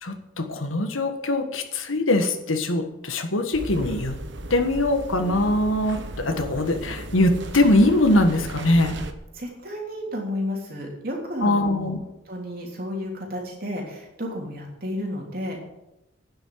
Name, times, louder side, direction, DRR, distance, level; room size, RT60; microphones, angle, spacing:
voice 1, 0.0-4.1 4.5-9.0 11.4-12.0, left 1 dB, 90° left, 6 dB, 1.6 m, -22 dB
sound 1, 3.5-9.1, right 2 dB, 65° right, 1.1 m, -36 dB
voice 2, 9.3-11.9 12.3-15.6, left 1 dB, 50° right, 0 dB, 3.3 m, -32 dB
9.7 x 8.0 x 9.6 m, 0.93 s
head